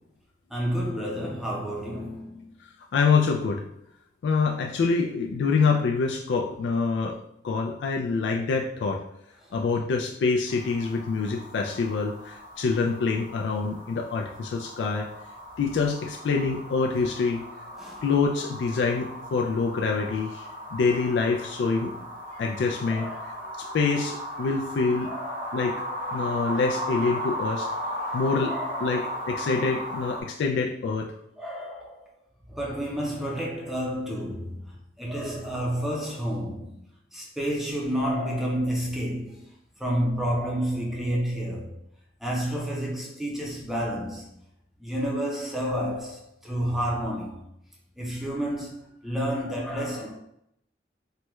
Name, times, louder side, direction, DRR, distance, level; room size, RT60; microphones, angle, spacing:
voice 1, 0.5-2.5 9.4-9.5 17.8-18.0 22.9-23.8 25.0-26.5 28.0-28.2 28.5-29.2 31.4-32.1 32.5-36.9 37.1-39.5 39.8-41.8 42.2-44.4 44.8-47.5 48.0-50.2, equal, ahead, 0.5 m, -30 dB
voice 2, 2.9-3.6 4.2-7.2 7.4-9.0 9.5-15.1 15.6-17.4 18.0-21.9 22.2-23.1 23.6-25.1 25.5-25.9 26.1-27.7 28.1-31.1, left 4 dB, 80° left, 0.3 m, -26 dB
sound 1, 10.5-30.2, equal, 45° right, 0.8 m, -36 dB
3.2 x 2.2 x 2.9 m
head